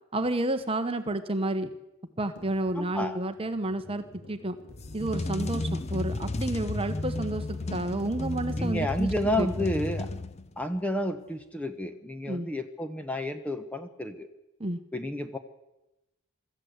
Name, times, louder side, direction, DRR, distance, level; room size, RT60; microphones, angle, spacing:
voice 1, 0.1-1.7 2.2-4.6 4.9-9.1 9.4-9.7 12.3-12.5 14.6-14.8, right 1 dB, 25° right, 9 dB, 1.1 m, -30 dB
sound 1, 2.4-9.1, left 1 dB, 75° left, 3.6 m, -53 dB
voice 2, 2.7-3.2 8.6-10.1 10.6-14.3 14.9-15.4, left 1 dB, 5° left, 8 dB, 1.0 m, -31 dB
sound 2, 4.7-10.7, left 2 dB, 30° left, 0.7 m, -33 dB
24.0 x 13.5 x 8.1 m, 0.95 s
head